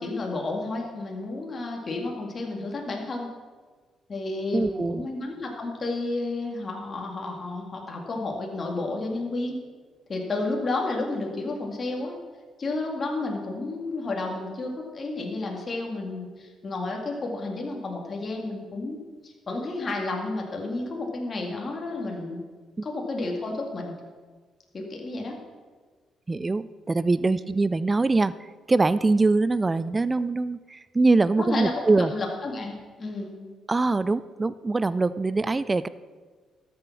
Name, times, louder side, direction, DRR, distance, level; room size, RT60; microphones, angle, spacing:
voice 1, 0.0-3.3 4.1-9.6 10.1-12.2 12.6-19.0 19.2-22.4 22.8-23.9 24.7-25.4 27.3-27.4 31.4-33.3, left 2 dB, 40° left, 0 dB, 2.2 m, -31 dB
voice 2, 4.5-5.1 22.8-22.9 26.3-32.1 33.7-35.9, right 3 dB, 25° right, 15 dB, 0.3 m, -23 dB
13.0 x 7.0 x 5.9 m, 1.5 s
cardioid pair, 90°, 0 cm